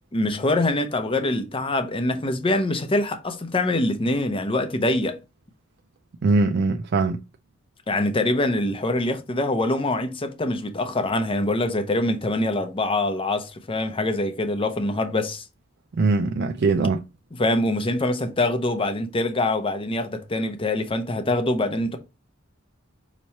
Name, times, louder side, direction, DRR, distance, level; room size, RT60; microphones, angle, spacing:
voice 1, 0.1-5.2 7.9-15.4 17.4-22.0, left 2 dB, 25° left, 0.6 m, -24 dB
voice 2, 6.2-7.2 15.9-17.0, right 3 dB, 60° right, 0.4 m, -21 dB
5.5 x 3.0 x 2.8 m
head